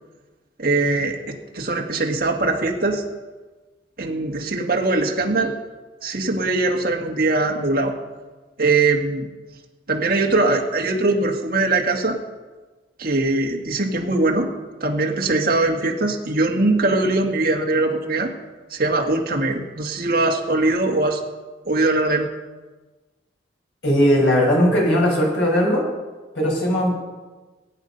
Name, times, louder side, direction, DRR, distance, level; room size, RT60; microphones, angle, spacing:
voice 1, 0.6-3.0 4.0-5.6 6.0-8.0 8.6-9.3 9.9-12.2 13.0-14.5 14.8-18.3 18.7-21.2 21.7-22.3, right 2 dB, 50° right, 1 dB, 2.0 m, -21 dB
voice 2, 23.8-25.8 26.4-27.0, equal, 80° left, -2 dB, 5.7 m, -18 dB
19.5 x 9.4 x 5.6 m, 1.3 s
head